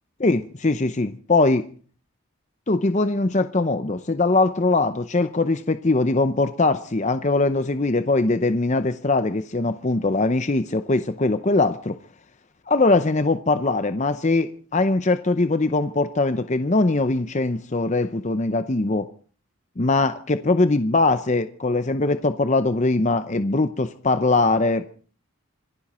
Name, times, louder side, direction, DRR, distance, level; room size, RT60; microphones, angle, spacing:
voice 1, 0.2-1.6 2.7-12.0 12.7-19.1 19.8-24.9, left 2 dB, 35° left, 0.6 m, -21 dB
26.0 x 11.0 x 4.3 m
head